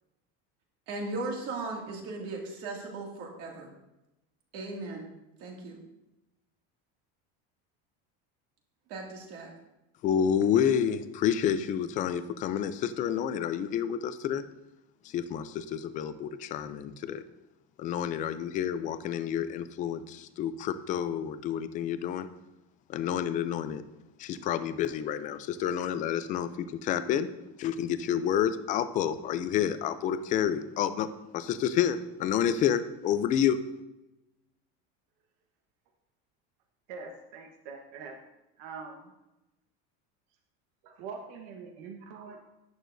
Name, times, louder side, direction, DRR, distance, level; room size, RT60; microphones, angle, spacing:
voice 1, 0.9-3.7 4.5-5.1 5.4-5.8 8.9-9.5, right 3 dB, 55° right, 0 dB, 2.3 m, -37 dB
voice 2, 10.0-14.4 15.1-17.2 17.8-22.3 22.9-23.8 24.2-27.3 27.6-31.1 31.3-33.6, left 9 dB, 25° left, 12 dB, 0.4 m, -29 dB
voice 3, 36.9-38.1 38.6-39.1 40.8-42.4, right 5 dB, 70° right, 2 dB, 1.3 m, -43 dB
11.0 x 9.5 x 2.6 m, 0.95 s
cardioid pair, 175°, 30 cm